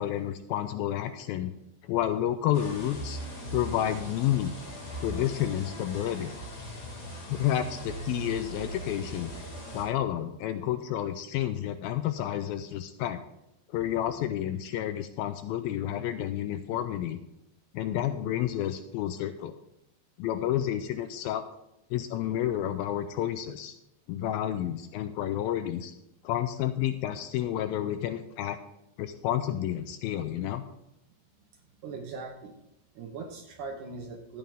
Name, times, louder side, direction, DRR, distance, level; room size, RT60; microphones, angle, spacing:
voice 1, 0.0-1.5 1.8-3.2 3.5-4.5 5.0-6.3 7.3-9.3 9.7-13.2 13.7-17.2 17.7-19.5 20.2-21.5 21.9-23.7 24.1-25.9 26.2-28.6 29.0-30.7, left 11 dB, 80° left, 10 dB, 2.2 m, -30 dB
sound 1, 2.5-9.9, right 1 dB, 50° left, 5.2 m, -40 dB
voice 2, 31.8-32.5 33.0-34.4, right 4 dB, 70° right, 3 dB, 2.1 m, -40 dB
13.5 x 9.0 x 3.5 m, 0.88 s
omnidirectional pair, 4.6 m